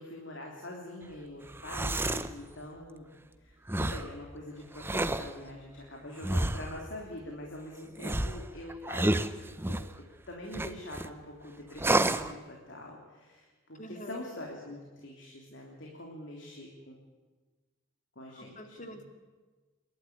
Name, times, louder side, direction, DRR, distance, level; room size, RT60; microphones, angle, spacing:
voice 1, 0.0-3.1 3.4-9.8 10.3-16.9 18.2-19.0, left 1 dB, 60° left, -1 dB, 3.3 m, -44 dB
sound 1, 1.5-2.3 3.7-4.1 4.8-5.3 6.2-6.8 8.0-9.9 10.5-11.1 11.8-12.3, right 1 dB, 10° right, 0.7 m, -30 dB
voice 2, 13.8-14.2 18.3-19.0, equal, 35° left, 5 dB, 2.4 m, -45 dB
28.0 x 12.0 x 9.5 m, 1.3 s
head